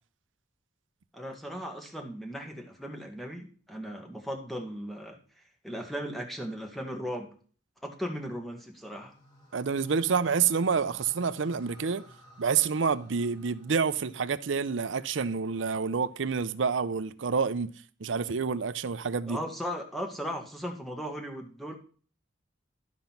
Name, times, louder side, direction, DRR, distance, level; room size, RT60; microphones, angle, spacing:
voice 1, 1.1-5.2 5.6-7.3 7.8-9.1 19.3-21.8, equal, ahead, 1.7 m, -37 dB
sound 1, 8.6-14.9, equal, 25° left, 3.1 m, -55 dB
voice 2, 9.5-12.0 12.4-17.7 18.0-19.4, right 5 dB, 80° right, 0.6 m, -28 dB
12.5 x 5.3 x 5.8 m
head